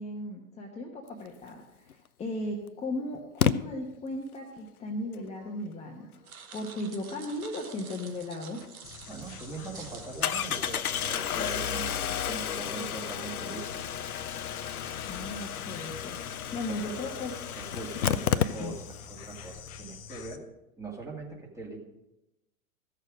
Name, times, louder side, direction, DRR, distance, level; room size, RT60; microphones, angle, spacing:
voice 1, 0.0-6.2 6.5-8.6 15.0-16.2 16.5-17.4 18.0-18.7, left 1 dB, 15° left, 0 dB, 1.1 m, -36 dB
Engine starting, 1.9-2.0 3.4-3.5 8.6-8.7 9.1-9.2 10.2-19.0 19.3-19.4 19.6-19.7, left 9 dB, 80° left, 0.6 m, -31 dB
sound 1, 6.2-11.5, right 6 dB, 75° right, 1.2 m, -48 dB
Insect, 8.8-20.4, left 7 dB, 40° left, 1.0 m, -46 dB
voice 2, 9.1-13.7 16.8-17.0 17.5-20.4 20.8-21.8, right 3 dB, 5° right, -1 dB, 1.9 m, -41 dB
14.5 x 6.5 x 4.9 m, 0.95 s
figure-of-eight pair, 100°, 43 cm